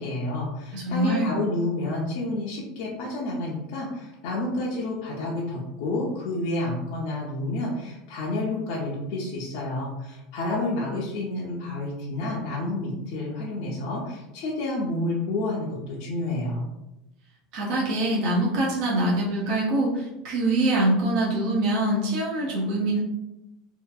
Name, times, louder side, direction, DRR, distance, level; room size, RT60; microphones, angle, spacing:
voice 1, 0.0-16.6, left 2 dB, 55° left, -5 dB, 0.5 m, -29 dB
voice 2, 0.7-1.3 17.5-23.0, right 1 dB, 45° right, -4 dB, 0.5 m, -24 dB
2.6 x 2.5 x 2.2 m, 0.95 s
supercardioid pair, 175°, 0 cm